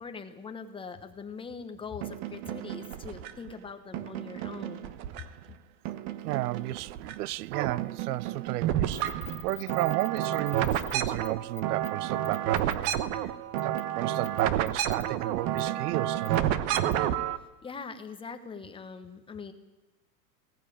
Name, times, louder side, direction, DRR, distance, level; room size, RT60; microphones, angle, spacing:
voice 1, 0.0-4.9 17.6-19.5, left 5 dB, 10° left, 1.1 m, -42 dB
sound 1, 2.0-3.5 3.9-5.5 5.8-7.1 7.4-17.4, right 11 dB, 40° right, 1.1 m, -30 dB
voice 2, 6.2-13.0 13.2-13.3 13.6-16.5, right 17 dB, 65° right, 0.6 m, -33 dB
sound 2, 8.9-10.9 11.2-11.3 11.5-11.9 12.2-12.9 13.6-13.8 14.2-15.0 15.6-15.7 16.2-16.4 16.8-16.9, left 21 dB, 50° left, 0.9 m, -44 dB
17.5 x 17.5 x 8.6 m
supercardioid pair, 155°, 49 cm